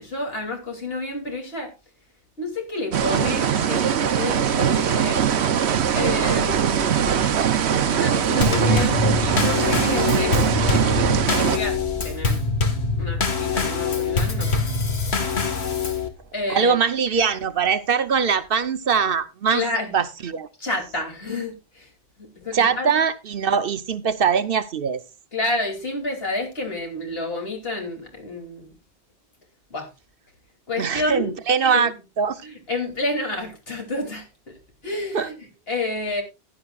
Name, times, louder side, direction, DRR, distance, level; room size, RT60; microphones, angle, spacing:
voice 1, 0.0-1.7 2.4-5.2 5.9-7.3 7.8-12.4 13.0-14.5 16.3-16.8 19.5-19.9 20.6-21.9 22.2-23.0 25.3-28.7 29.7-29.9 30.7-31.3 31.7-31.9 32.4-36.2, left 2 dB, 65° left, 3.1 m, -30 dB
sound 1, 2.9-11.6, right 8 dB, 85° right, 1.1 m, -21 dB
Thunder, 5.2-18.1 19.0-19.1, right 1 dB, 15° right, 1.4 m, -40 dB
Drum kit / Snare drum / Bass drum, 8.4-16.1, left 4 dB, 85° left, 1.9 m, -24 dB
voice 2, 16.5-19.6 19.9-20.5 22.5-25.0 30.8-32.4 35.1-35.3, right 6 dB, 65° right, 1.0 m, -22 dB
15.5 x 11.0 x 2.4 m
omnidirectional pair, 1.1 m